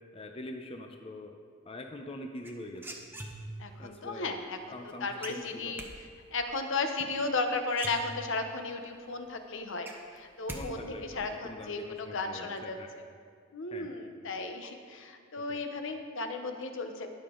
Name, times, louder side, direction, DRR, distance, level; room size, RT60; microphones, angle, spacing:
voice 1, 0.1-1.3 1.7-2.9 3.8-4.4 4.7-5.8 10.5-12.9 13.7-13.9 15.5-15.6, left 1 dB, 25° left, 4 dB, 0.6 m, -44 dB
sound 1, 2.4-3.7 5.2-5.9 7.3-7.4 7.7-8.5 9.0-9.1 9.4-10.6 10.9-11.4, right 1 dB, 10° right, 0.9 m, -42 dB
voice 2, 3.6-5.8 6.3-13.0 13.5-17.1, left 3 dB, 65° left, 6 dB, 0.9 m, -35 dB
19.0 x 6.9 x 3.8 m, 2.1 s
head